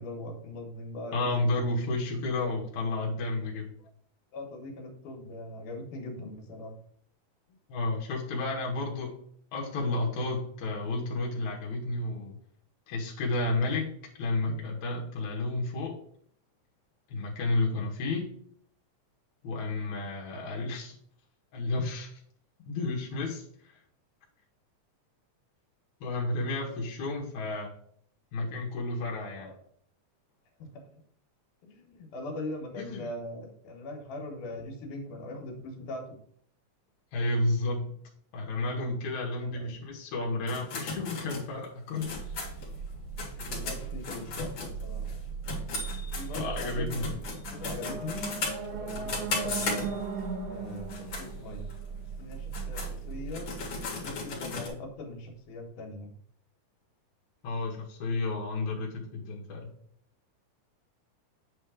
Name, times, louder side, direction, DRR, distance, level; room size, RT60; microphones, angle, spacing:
voice 1, 0.0-1.6 4.3-6.7 7.5-7.6 29.3-29.6 30.6-30.9 31.6-36.2 39.3-39.7 43.3-45.2 46.2-47.2 47.5-49.9 50.4-53.5 54.0-56.1, left 2 dB, 90° left, 2 dB, 2.9 m, -41 dB
voice 2, 1.1-3.7 7.7-9.2 9.5-12.4 12.9-16.0 17.1-18.3 19.4-21.0 21.5-22.1 22.7-23.7 26.0-27.7 28.3-29.5 32.8-33.1 37.1-38.0 38.3-42.1 46.3-47.1 57.4-59.7, left 2 dB, 75° left, -1 dB, 2.6 m, -31 dB
sound 1, 40.5-45.2 45.4-50.2 50.8-51.3 51.7-51.8 52.3-54.7, left 4 dB, 55° left, 2.6 m, -36 dB
sound 2, 42.0-54.9, right 6 dB, 85° right, 2.5 m, -40 dB
sound 3, 47.3-52.4, right 5 dB, 65° right, 2.0 m, -38 dB
8.6 x 3.5 x 4.9 m, 0.62 s
omnidirectional pair, 3.4 m